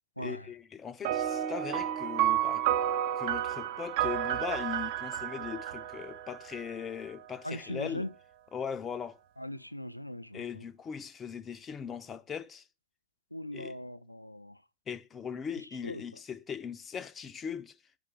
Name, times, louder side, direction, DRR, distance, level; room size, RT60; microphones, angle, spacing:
voice 1, 0.2-2.6 3.2-8.1 8.5-9.2 10.3-12.6 13.5-13.8 14.9-17.7, left 7 dB, 20° left, 0.4 m, -39 dB
sound 1, 1.0-6.8, right 11 dB, 50° right, 0.5 m, -31 dB
voice 2, 7.4-8.1 9.4-10.6 13.3-14.5 15.8-16.0, left 1 dB, 90° left, 0.3 m, -39 dB
5.5 x 5.0 x 4.8 m
figure-of-eight pair, 90°, 0 cm